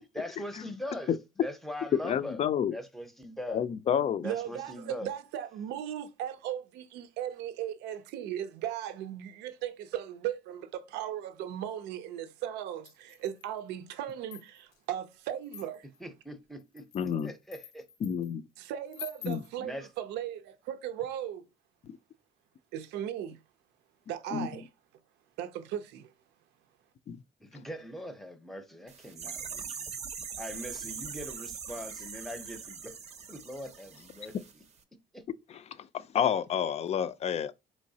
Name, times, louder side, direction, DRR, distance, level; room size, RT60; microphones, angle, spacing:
voice 1, 0.1-2.4 2.7-3.6 4.2-5.1 16.0-17.9 19.6-19.9 27.4-29.9 30.4-33.0 33.3-34.6 35.1-35.2, left 1 dB, ahead, 0.7 m, -41 dB
voice 2, 1.9-2.8 3.5-4.3 16.9-17.3 18.0-18.4 19.2-19.4 21.8-21.9 24.3-24.5 27.1-27.2 35.8-37.5, left 8 dB, 40° left, 0.4 m, -29 dB
voice 3, 4.2-15.9 18.6-21.4 22.7-23.4 24.1-24.7 25.4-26.1, right 11 dB, 90° right, 0.5 m, -37 dB
sound 1, 12.9-13.6 14.1-14.8 15.4-16.0 16.6-18.3 18.9-19.5, left 10 dB, 75° left, 0.7 m, -48 dB
sound 2, 28.9-34.5 34.8-34.9, right 6 dB, 40° right, 0.6 m, -42 dB
4.4 x 3.0 x 2.7 m
cardioid pair, 110°, 17 cm